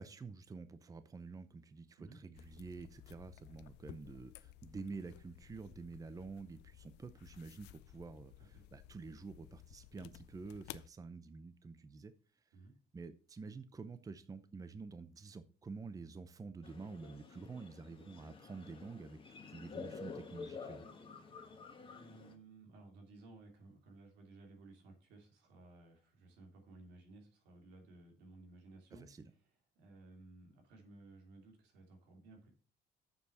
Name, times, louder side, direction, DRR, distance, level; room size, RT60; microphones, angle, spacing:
voice 1, 0.0-12.1 12.9-19.2 19.5-20.8 29.0-29.3, right 4 dB, 20° right, 12 dB, 0.7 m, -49 dB
sound 1, 2.3-10.9, left 15 dB, 85° left, 0.5 m, -56 dB
sound 2, 16.6-22.3, left 4 dB, 30° left, 1.5 m, -50 dB
voice 2, 21.9-29.5 29.7-32.5, right 2 dB, 90° right, 3 dB, 2.9 m, -58 dB
7.1 x 6.8 x 5.7 m, 0.38 s
cardioid pair, 110°, 17 cm